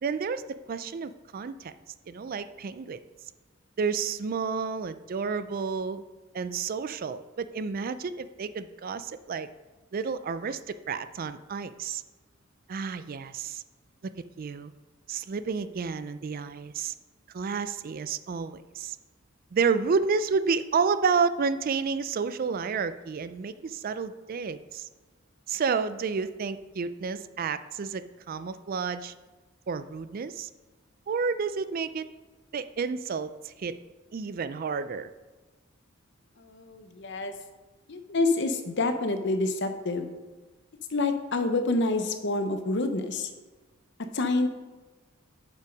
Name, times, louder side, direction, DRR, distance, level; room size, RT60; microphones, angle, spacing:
voice 1, 0.0-1.7 2.1-3.0 3.8-6.0 6.3-9.5 9.9-12.0 12.7-13.6 14.0-14.1 14.4-14.7 15.1-16.9 17.3-19.0 19.5-24.9 25.5-29.1 29.7-30.5 31.1-32.1 32.5-33.8 34.1-35.1, right 5 dB, 45° right, 13 dB, 0.4 m, -30 dB
voice 2, 36.4-37.3 37.9-40.1 40.9-43.3 44.1-44.5, left 2 dB, 60° left, 7 dB, 0.8 m, -27 dB
8.0 x 5.5 x 5.2 m, 1.3 s
head